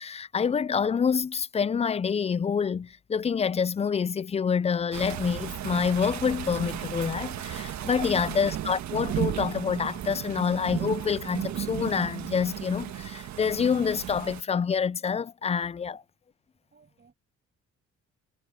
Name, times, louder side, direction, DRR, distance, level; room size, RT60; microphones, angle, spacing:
voice 1, 0.0-16.0, left 6 dB, 20° left, 0.3 m, -27 dB
sound 1, 4.9-14.4, right 11 dB, 65° right, 1.4 m, -34 dB
voice 2, 16.6-17.1, right 4 dB, 35° right, 7.6 m, -56 dB
cardioid pair, 90°, 30 cm